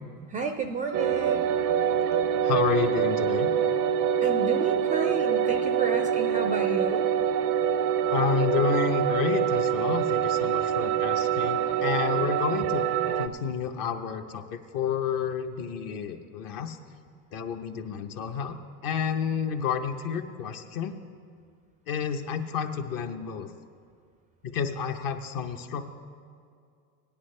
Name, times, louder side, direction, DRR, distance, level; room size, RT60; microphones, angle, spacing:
voice 1, 0.3-1.5 4.2-7.1, right 5 dB, 20° right, 6 dB, 0.3 m, -31 dB
sound 1, 0.9-13.3, right 8 dB, 85° right, 0.6 m, -25 dB
voice 2, 2.4-3.5 8.1-12.8 13.1-16.8 17.3-20.9 21.9-23.5 24.4-25.8, left 7 dB, 50° left, 6 dB, 0.9 m, -30 dB
17.5 x 10.0 x 3.3 m, 2.3 s
supercardioid pair, 120°, 44 cm